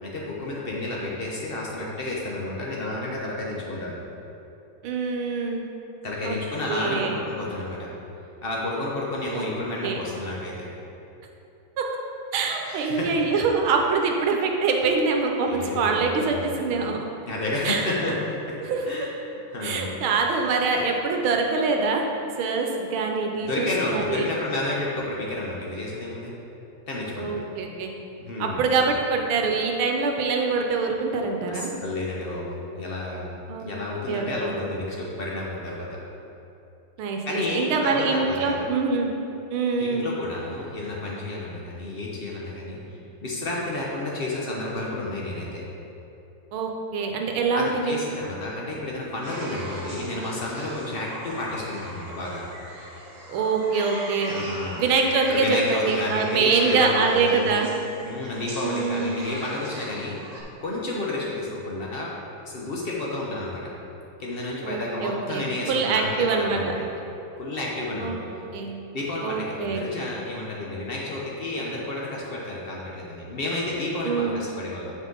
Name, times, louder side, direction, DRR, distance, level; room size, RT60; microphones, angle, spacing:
voice 1, 0.0-4.0 6.0-7.9 8.4-10.7 12.7-13.1 15.5-16.6 17.2-18.6 18.8-20.0 23.4-26.3 26.9-27.4 28.2-28.6 31.5-36.0 37.3-38.6 39.8-42.8 43.2-45.6 47.5-52.4 54.4-54.8 55.3-57.7 58.0-60.2 60.6-62.1 62.4-63.6 64.2-66.8 67.4-68.3 68.9-74.9, left 2 dB, 70° left, -4 dB, 0.5 m, -31 dB
voice 2, 4.8-5.7 6.2-6.4 6.7-7.2 9.2-9.4 9.8-10.0 11.8-11.9 12.3-17.1 17.6-18.1 18.6-18.8 19.6-22.0 22.4-24.3 27.2-27.9 28.4-31.7 33.5-33.7 34.1-34.5 37.0-39.1 39.5-40.1 46.5-48.1 53.3-54.5 54.8-57.7 58.6-59.2 64.6-66.6 68.0-68.2 68.5-68.8 69.2-69.8 74.0-74.4, right 4 dB, 85° right, 2 dB, 1.6 m, -24 dB
sound 1, 49.2-60.4, right 1 dB, 40° right, 0.6 m, -39 dB
8.0 x 5.4 x 3.8 m, 2.9 s
omnidirectional pair, 2.3 m